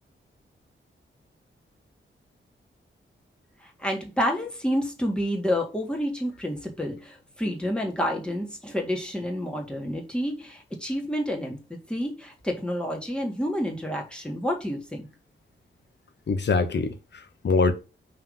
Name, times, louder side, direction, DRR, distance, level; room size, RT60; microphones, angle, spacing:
voice 1, 3.8-11.6 11.9-15.1, equal, 5° left, 1.9 m, -29 dB
voice 2, 16.3-17.7, left 4 dB, 55° left, 1.1 m, -24 dB
5.7 x 3.4 x 5.4 m
wide cardioid pair, 150°, 21 cm